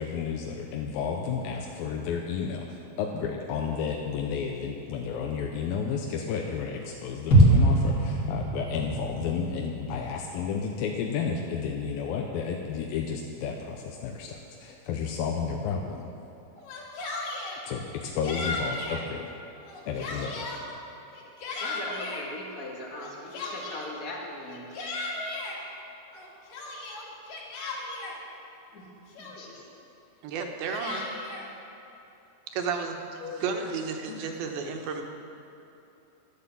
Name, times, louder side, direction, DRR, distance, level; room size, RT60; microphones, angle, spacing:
voice 1, 0.0-16.1 17.6-19.3 19.9-20.5, left 6 dB, 80° left, 1 dB, 2.5 m, -32 dB
sound 1, 7.3-11.2 11.6-11.7, right 1 dB, 20° left, 2.6 m, -24 dB
Yell, 16.6-17.6 18.2-19.0 19.6-20.6 21.1-22.3 23.0-24.0 24.5-25.6 26.1-28.2 28.8-28.9 29.2-29.6 30.4-31.5, left 2 dB, 65° left, 3.5 m, -36 dB
voice 2, 21.6-24.7 28.7-28.9 29.4-29.6 33.2-33.7 34.1-34.6, left 2 dB, 40° left, -2 dB, 1.3 m, -40 dB
voice 3, 30.2-31.1 32.5-35.0, right 5 dB, 75° right, 4 dB, 2.9 m, -32 dB
12.5 x 11.0 x 7.1 m, 2.8 s
omnidirectional pair, 4.4 m